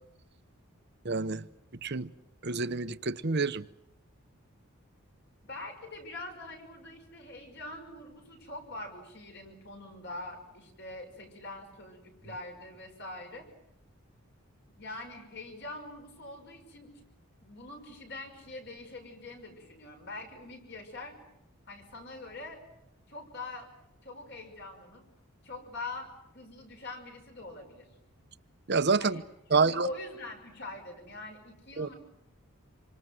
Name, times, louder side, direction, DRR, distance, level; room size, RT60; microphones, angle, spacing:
voice 1, 1.0-1.5 1.8-2.1 2.4-3.6 28.7-29.2 29.5-29.9 31.8-31.9, right 4 dB, 50° right, 0.9 m, -27 dB
voice 2, 5.5-13.5 14.8-16.9 17.4-21.2 21.7-22.6 23.1-23.7 24.0-25.0 25.4-27.9 29.0-29.2 29.5-31.9, left 2 dB, 50° left, 6.1 m, -44 dB
27.5 x 25.5 x 7.8 m
head